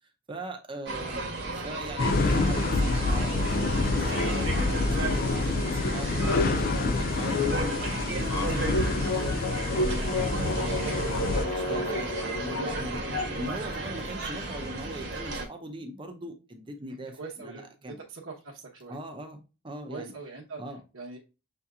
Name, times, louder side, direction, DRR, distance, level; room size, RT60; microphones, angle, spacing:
voice 1, 0.3-7.4 8.0-18.0 18.9-20.3 20.6-20.8, equal, 25° right, 0.6 m, -40 dB
sound 1, 0.9-15.5, right 2 dB, 55° right, 1.0 m, -34 dB
sound 2, 2.0-3.8 4.1-13.6, left 2 dB, 75° left, 0.8 m, -33 dB
sound 3, 2.0-11.5, left 3 dB, 45° left, 0.4 m, -28 dB
voice 2, 16.9-19.0 19.9-20.6 20.9-21.2, right 4 dB, 75° right, 0.9 m, -42 dB
6.7 x 2.8 x 2.4 m
head